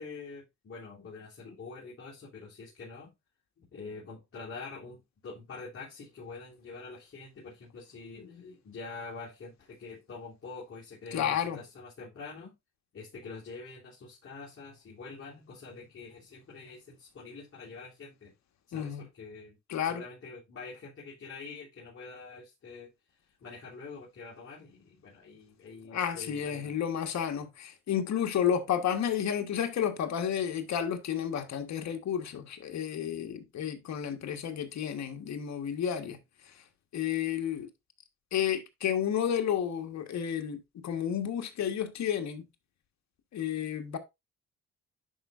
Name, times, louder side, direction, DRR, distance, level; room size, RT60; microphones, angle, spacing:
voice 1, 0.0-3.1 3.6-12.5 12.9-18.3 18.7-19.6 19.8-22.9 23.4-26.8, left 4 dB, 45° left, 3.4 m, -45 dB
voice 2, 11.1-11.6 18.7-19.0 19.7-20.0 25.9-36.2 36.9-37.7 38.3-42.4 43.3-44.0, left 9 dB, 65° left, 1.5 m, -31 dB
11.0 x 4.7 x 2.6 m
cardioid pair, 90°, 30 cm